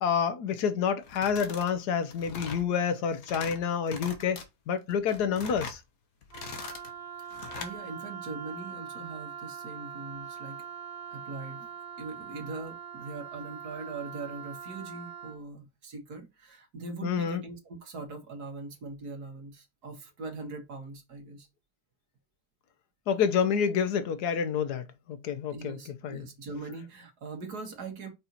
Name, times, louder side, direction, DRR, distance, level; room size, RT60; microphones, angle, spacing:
voice 1, 0.0-4.4 4.7-5.8 17.0-17.4 23.1-25.8 26.0-26.2, left 7 dB, 85° left, 1.4 m, -28 dB
sound 1, 1.0-1.7 2.0-2.7 3.1-3.6 3.9-4.4 4.9-5.8 6.2-6.9 7.3-7.7, left 5 dB, 65° left, 1.5 m, -41 dB
Wind instrument woodwind instrument, 6.3-15.4, right 7 dB, 55° right, 1.7 m, -42 dB
voice 2, 7.6-10.7 11.1-11.7 12.0-21.5 25.5-28.1, right 3 dB, 75° right, 2.1 m, -41 dB
5.4 x 4.4 x 4.0 m
omnidirectional pair, 1.7 m